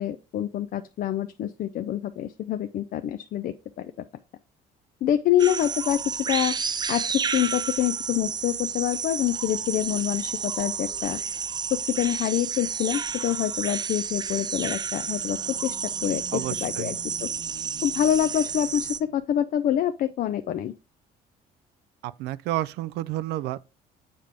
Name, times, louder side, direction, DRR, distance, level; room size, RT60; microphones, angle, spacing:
voice 1, 0.0-3.9 5.0-6.5 6.9-11.2 11.7-15.8 16.0-17.3 17.8-20.7, left 11 dB, 55° left, 0.5 m, -26 dB
sound 1, 5.4-19.0, right 6 dB, 25° right, 0.4 m, -31 dB
sound 2, 14.5-19.3, right 9 dB, 70° right, 1.0 m, -47 dB
voice 2, 16.3-16.9 22.0-23.7, right 15 dB, 85° right, 0.4 m, -30 dB
7.5 x 5.1 x 3.4 m
cardioid pair, 110°, 17 cm